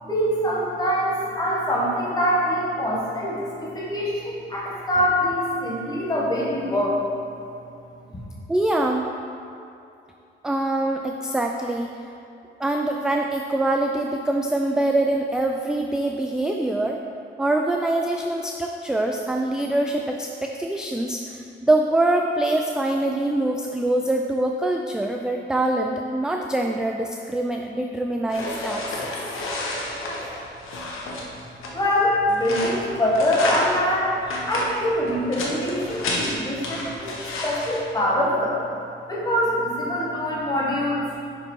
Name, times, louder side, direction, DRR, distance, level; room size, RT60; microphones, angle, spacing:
voice 1, 0.0-7.0 31.7-37.2 37.4-38.6 39.1-41.1, equal, 20° left, -5 dB, 1.6 m, -24 dB
voice 2, 8.5-9.1 10.4-11.9 12.6-17.0 17.4-29.1, right 1 dB, 5° right, 2 dB, 0.3 m, -24 dB
sound 1, 28.3-37.8, left 2 dB, 90° left, 1.1 m, -30 dB
5.7 x 5.3 x 4.5 m, 2.7 s
cardioid pair, 105°, 21 cm